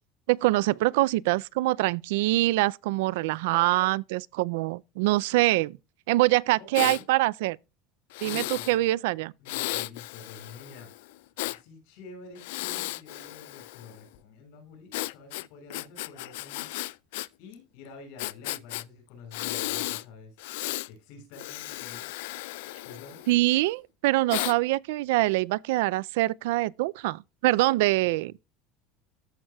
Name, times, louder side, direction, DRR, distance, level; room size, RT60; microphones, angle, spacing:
voice 1, 0.3-5.7 6.1-7.6 8.2-9.3 23.3-28.4, right 19 dB, 85° right, 0.3 m, -24 dB
voice 2, 6.5-7.0 8.2-8.8 9.4-16.7 17.4-20.4 20.9-22.2 22.8-23.2, left 4 dB, 60° left, 5.9 m, -48 dB
Breathing, 6.7-7.0 8.1-8.8 9.5-11.6 12.4-14.0 14.9-17.3 17.5-17.6 18.2-18.8 19.3-20.0 20.4-20.9 21.3-23.5 24.3-24.6, left 19 dB, 80° left, 0.3 m, -34 dB
13.5 x 6.2 x 2.3 m
cardioid pair, 175°, 0 cm